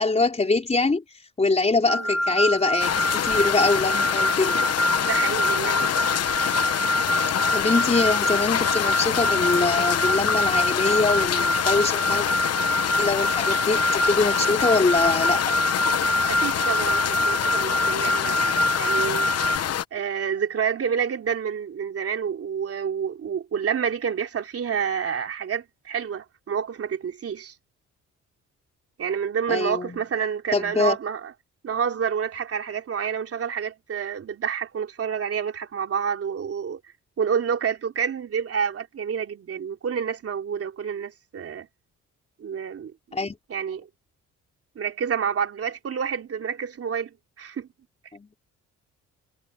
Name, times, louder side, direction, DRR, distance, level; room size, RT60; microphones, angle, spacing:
voice 1, 0.0-4.6 7.5-12.3 13.0-15.6 29.5-30.0 30.5-31.0 43.1-43.3 48.1-48.3, left 3 dB, 20° left, 4.5 m, -24 dB
sound 1, 1.9-19.6, equal, ahead, 3.2 m, -25 dB
sound 2, 2.8-19.8, left 10 dB, 55° left, 1.0 m, -26 dB
voice 2, 5.0-5.9 16.3-18.4 18.8-19.3 19.9-27.5 29.0-31.3 31.6-36.8 37.2-41.7 42.4-42.9 43.5-43.9 44.7-47.7, right 7 dB, 50° right, 3.3 m, -28 dB
cardioid pair, 90°, 30 cm